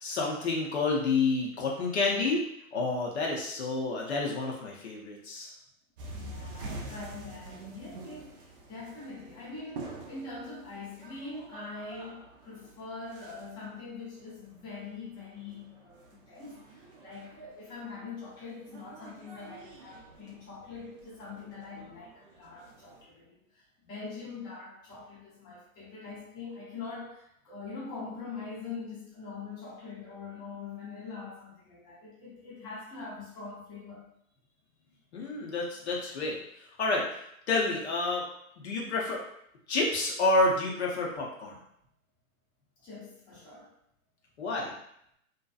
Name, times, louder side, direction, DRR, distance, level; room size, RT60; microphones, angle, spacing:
voice 1, 0.0-2.4 2.7-5.5 35.1-36.4 36.8-37.2 37.5-38.3 38.6-39.2 39.7-41.6 44.4-44.7, left 3 dB, 50° left, -2 dB, 0.6 m, -29 dB
sound 1, 6.0-23.0, right 2 dB, 40° right, 0.5 m, -47 dB
voice 2, 6.1-34.1 42.8-43.7, left 4 dB, 10° left, -9 dB, 0.6 m, -43 dB
2.6 x 2.2 x 2.4 m, 0.73 s
figure-of-eight pair, 120°, 43 cm